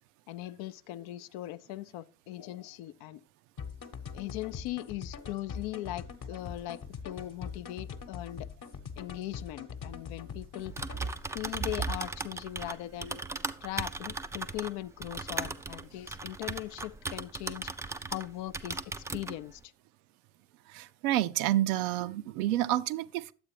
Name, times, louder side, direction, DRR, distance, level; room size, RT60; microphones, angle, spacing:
voice 1, 0.3-3.2 4.1-8.5 9.0-10.7 11.3-13.2 13.6-17.7 18.1-18.8 19.1-19.6, left 15 dB, 60° left, 0.5 m, -39 dB
sound 1, 3.6-11.2, left 6 dB, 45° left, 1.0 m, -43 dB
Typing, 10.6-18.3 18.5-19.4, right 3 dB, 5° right, 0.3 m, -37 dB
voice 2, 20.7-23.3, right 14 dB, 70° right, 0.5 m, -29 dB
10.5 x 8.0 x 2.9 m
figure-of-eight pair, 45°, 47 cm